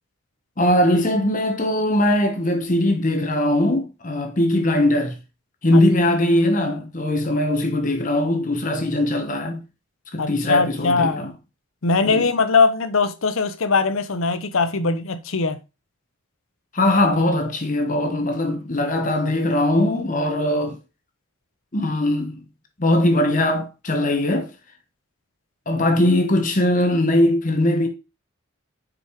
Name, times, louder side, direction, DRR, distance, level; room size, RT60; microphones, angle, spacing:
voice 1, 0.6-5.2 5.6-9.6 10.1-11.3 12.0-12.2 16.7-20.8 21.7-22.4 22.8-24.5 25.7-27.9, left 1 dB, 40° left, 1.1 m, -20 dB
voice 2, 10.2-11.3 11.8-15.6, left 4 dB, 80° left, 0.8 m, -21 dB
6.1 x 4.9 x 4.6 m
head